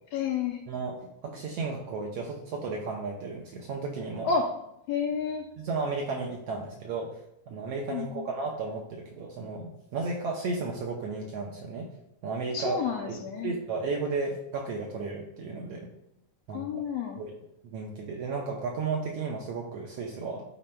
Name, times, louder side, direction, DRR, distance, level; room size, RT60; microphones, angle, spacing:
voice 1, 0.1-0.6 4.2-4.5 4.9-5.4 7.9-8.3 12.5-13.5 16.5-17.2, left 6 dB, 80° left, 1 dB, 1.5 m, -30 dB
voice 2, 0.7-4.3 5.6-7.1 7.5-11.9 12.2-15.9 16.5-16.8 17.2-17.3 17.6-20.4, right 4 dB, 80° right, 0 dB, 1.5 m, -34 dB
11.0 x 4.3 x 2.2 m, 0.80 s
omnidirectional pair, 3.4 m